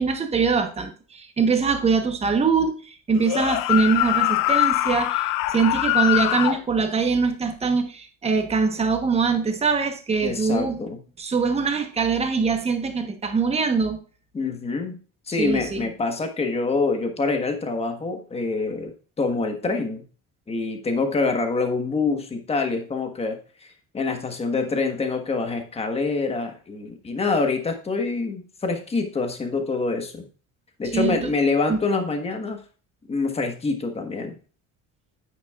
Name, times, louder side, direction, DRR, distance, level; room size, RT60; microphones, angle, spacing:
voice 1, 0.0-10.8 11.2-14.0 15.4-15.9 30.9-31.3 31.7-31.8, right 5 dB, 20° right, 1.1 m, -23 dB
sound 1, 3.2-6.6, left 16 dB, 80° left, 0.7 m, -23 dB
voice 2, 10.2-11.0 14.3-15.0 15.3-18.9 19.2-20.0 20.5-23.4 23.9-30.3 30.8-32.6 33.1-34.4, left 3 dB, 20° left, 1.3 m, -25 dB
9.3 x 9.2 x 2.4 m
cardioid pair, 170°, 33 cm